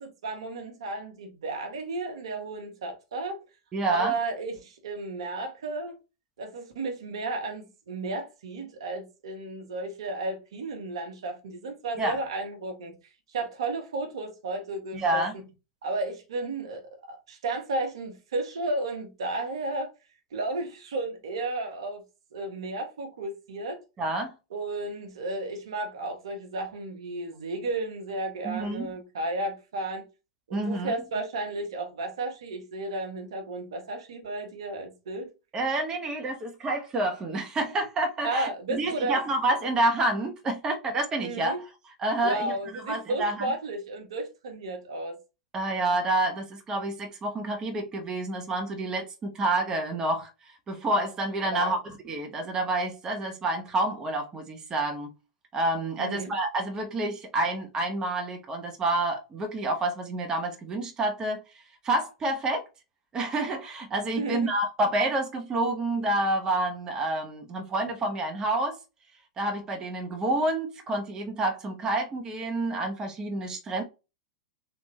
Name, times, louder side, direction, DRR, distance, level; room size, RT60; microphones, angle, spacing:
voice 1, 0.0-3.4 3.9-6.0 6.4-13.0 13.3-15.4 15.8-19.9 20.3-22.0 22.3-23.8 24.5-30.1 30.5-35.3 38.2-39.2 41.2-41.6 42.2-45.2 51.5-51.8 56.0-56.3 64.1-64.5, right 2 dB, 70° right, 1.1 m, -33 dB
voice 2, 3.7-4.1 12.0-12.2 14.9-15.3 24.0-24.3 28.4-28.9 30.5-30.9 35.5-41.5 42.0-42.5 42.9-43.5 45.5-50.3 50.7-51.8 52.0-55.1 55.5-61.4 61.8-62.7 63.1-68.8 69.4-73.8, right 2 dB, 25° right, 0.9 m, -28 dB
3.4 x 2.5 x 3.2 m
hypercardioid pair, 100°, 3 cm